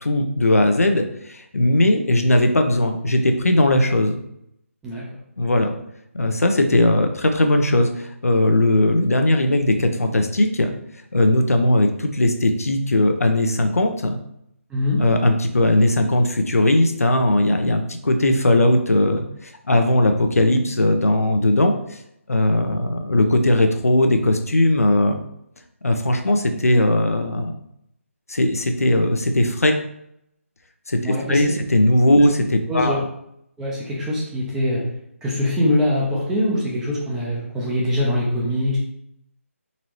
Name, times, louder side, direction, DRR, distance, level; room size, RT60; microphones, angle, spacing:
voice 1, 0.0-4.2 5.4-5.7 6.1-10.7 11.1-14.2 15.0-22.0 22.3-25.2 25.8-27.6 28.3-29.7 30.9-33.0, left 1 dB, 85° left, 5 dB, 0.6 m, -18 dB
voice 2, 14.7-15.0 31.0-31.6 32.7-33.0 33.6-34.8 35.2-38.8, left 1 dB, 5° right, -5 dB, 0.7 m, -23 dB
4.0 x 2.8 x 3.1 m, 0.75 s
figure-of-eight pair, 155°, 8 cm